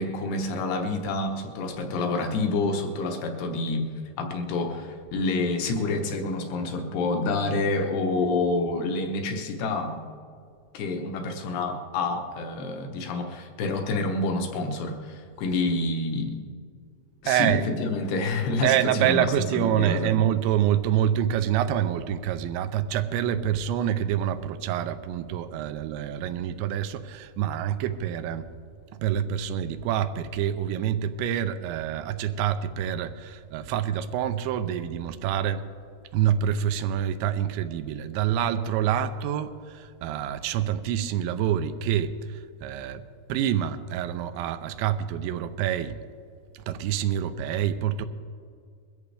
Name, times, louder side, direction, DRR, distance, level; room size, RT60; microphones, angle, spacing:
voice 1, 0.0-3.9 4.2-10.0 10.7-16.4 17.2-20.1, left 3 dB, 70° left, 4 dB, 2.9 m, -28 dB
voice 2, 17.3-17.6 18.6-28.5 29.0-35.7 36.1-43.0 43.3-46.0 46.5-48.1, right 10 dB, 85° right, 10 dB, 2.9 m, -26 dB
22.0 x 14.0 x 3.4 m, 2.2 s
omnidirectional pair, 5.3 m